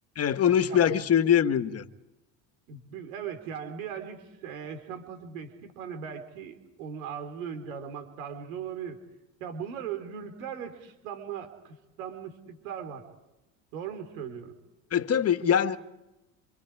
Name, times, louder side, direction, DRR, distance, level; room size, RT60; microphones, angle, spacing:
voice 1, 0.1-1.8 14.9-15.8, left 9 dB, 35° left, 1.7 m, -23 dB
voice 2, 2.7-9.0 9.4-13.1 13.7-14.6, right 7 dB, 85° right, 4.0 m, -39 dB
28.0 x 26.0 x 4.9 m
supercardioid pair, 100°, 40 cm